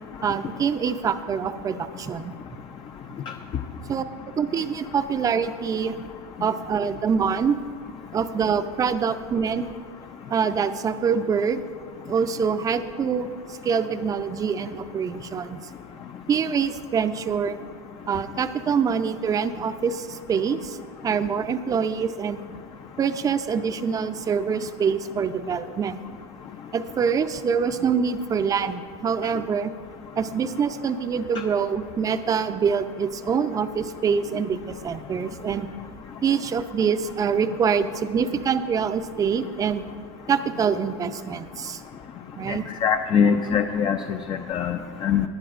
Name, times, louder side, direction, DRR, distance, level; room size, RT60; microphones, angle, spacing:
voice 1, 0.2-2.3 3.9-4.0 4.4-6.0 6.4-7.6 8.1-9.7 10.3-11.6 12.1-15.6 16.3-17.6 18.1-20.8 21.0-22.4 23.0-26.0 26.7-29.7 30.2-35.7 36.2-39.8 40.3-41.8 42.4-42.6, right 6 dB, 25° right, 10 dB, 0.5 m, -25 dB
voice 2, 42.5-45.3, left 7 dB, 30° left, 6 dB, 0.5 m, -23 dB
19.5 x 9.9 x 2.5 m, 2.2 s
supercardioid pair, 120°, 15 cm